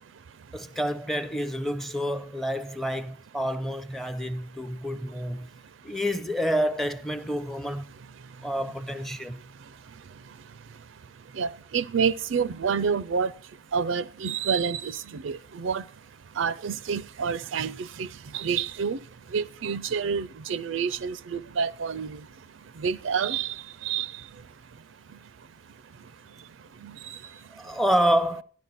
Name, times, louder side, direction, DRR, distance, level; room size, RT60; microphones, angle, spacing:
voice 1, 0.5-5.5 5.8-7.9 8.4-9.4 27.5-28.4, equal, ahead, 0.5 m, -28 dB
voice 2, 11.4-13.3 13.7-15.8 16.4-18.1 18.3-19.0 19.3-22.2 22.8-23.5 23.8-24.1 26.8-27.0, right 6 dB, 80° right, 0.5 m, -28 dB
13.0 x 10.5 x 4.1 m
head